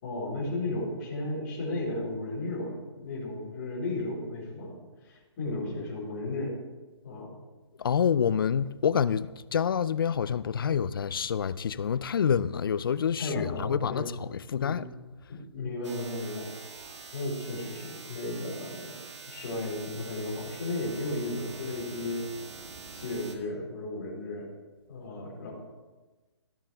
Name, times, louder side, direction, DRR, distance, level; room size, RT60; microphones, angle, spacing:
voice 1, 0.0-4.8 5.0-6.5 7.0-7.3 13.2-14.0 14.5-14.8 15.3-16.5 17.1-22.2 22.9-24.5 24.9-25.5, left 2 dB, 30° left, 4.2 m, -34 dB
voice 2, 7.8-14.8, left 7 dB, 50° left, 0.4 m, -27 dB
sound 1, 15.8-23.4, right 4 dB, 85° right, 1.7 m, -45 dB
16.5 x 7.8 x 3.4 m
hypercardioid pair, 170°, 15 cm